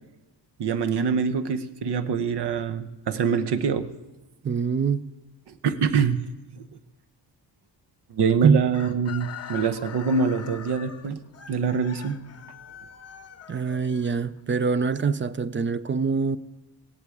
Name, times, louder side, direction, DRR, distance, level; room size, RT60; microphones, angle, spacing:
voice 1, 0.6-3.9 5.6-6.2 6.5-6.6 8.1-11.2 11.5-12.2, right 6 dB, 65° right, 1.0 m, -24 dB
voice 2, 4.4-5.1 8.4-8.6 13.5-16.4, right 5 dB, 30° right, 0.4 m, -24 dB
Chicken rooster, 8.7-14.7, left 8 dB, 35° left, 0.7 m, -43 dB
16.5 x 8.3 x 8.4 m
wide cardioid pair, 135°, 44 cm